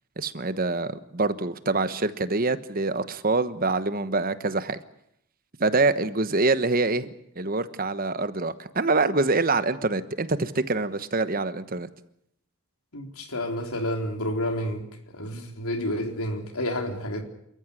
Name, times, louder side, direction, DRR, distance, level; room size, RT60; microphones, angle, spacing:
voice 1, 0.2-4.8 5.6-7.1 7.4-11.9, right 3 dB, 40° right, 12 dB, 1.2 m, -25 dB
voice 2, 12.9-14.9 15.1-17.2, left 1 dB, 85° left, 4 dB, 4.0 m, -30 dB
28.5 x 14.5 x 9.8 m, 0.76 s
head